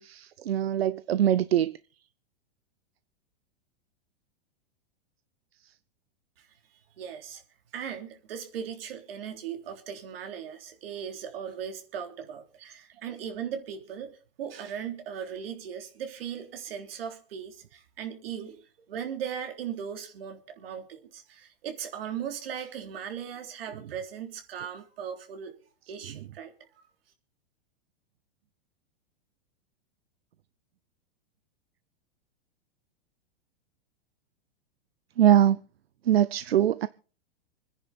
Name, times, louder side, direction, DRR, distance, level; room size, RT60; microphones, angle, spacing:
voice 1, 0.0-1.8 35.2-35.6 36.0-36.9, right 11 dB, 90° right, 0.6 m, -22 dB
voice 2, 7.0-7.4 7.7-14.1 14.4-25.5 25.9-26.5, right 8 dB, 70° right, 3.4 m, -38 dB
25.5 x 10.0 x 4.2 m
hypercardioid pair, 125°, 30 cm